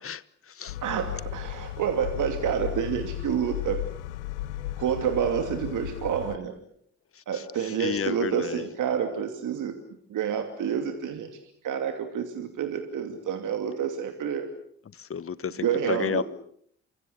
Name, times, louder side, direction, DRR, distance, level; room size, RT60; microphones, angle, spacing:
voice 1, 0.0-0.8 7.1-8.7 14.9-16.2, left 7 dB, 40° left, 1.3 m, -32 dB
sound 1, 0.7-6.4, left 14 dB, 85° left, 1.1 m, -35 dB
voice 2, 0.8-3.8 4.8-6.6 7.3-9.8 10.1-11.4 11.6-14.5 15.6-16.2, right 8 dB, 60° right, 2.8 m, -28 dB
29.0 x 24.5 x 6.8 m
hypercardioid pair, 45°, 34 cm